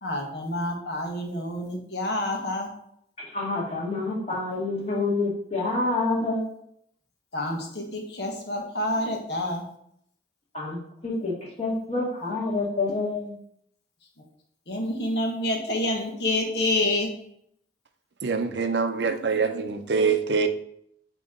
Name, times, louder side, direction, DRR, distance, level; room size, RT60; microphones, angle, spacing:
voice 1, 0.0-2.7 7.3-9.6 14.7-17.1, left 1 dB, 70° left, 1 dB, 1.3 m, -28 dB
voice 2, 3.2-6.4 10.5-13.4, left 3 dB, 40° left, -5 dB, 2.1 m, -28 dB
voice 3, 18.2-20.5, right 4 dB, 75° right, 7 dB, 0.6 m, -24 dB
9.1 x 3.0 x 3.8 m, 0.70 s
head